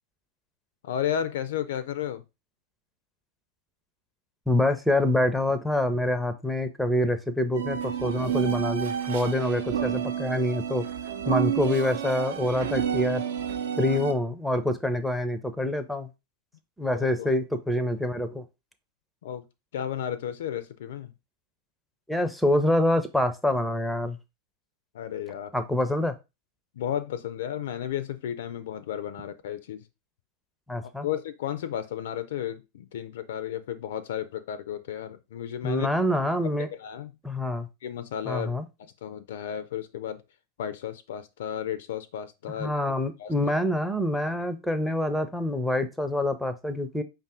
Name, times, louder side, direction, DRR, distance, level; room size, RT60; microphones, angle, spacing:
voice 1, 0.8-2.2 16.9-17.3 19.2-19.4 19.7-21.1 24.9-25.5 26.8-29.8 30.8-35.9 36.4-37.1 37.8-38.5 39.0-40.2 40.6-42.9 43.2-43.5, left 10 dB, 55° left, 13 dB, 0.4 m, -33 dB
voice 2, 4.5-10.8 11.3-13.2 13.8-16.1 16.8-18.4 22.1-24.2 25.5-26.1 30.7-31.1 35.6-36.7 37.2-37.7 38.3-38.6 42.6-47.0, left 1 dB, ahead, 11 dB, 0.5 m, -26 dB
sound 1, 7.5-14.1, right 9 dB, 60° right, 0.6 m, -30 dB
5.2 x 2.5 x 3.5 m, 0.25 s
figure-of-eight pair, 90°, 0 cm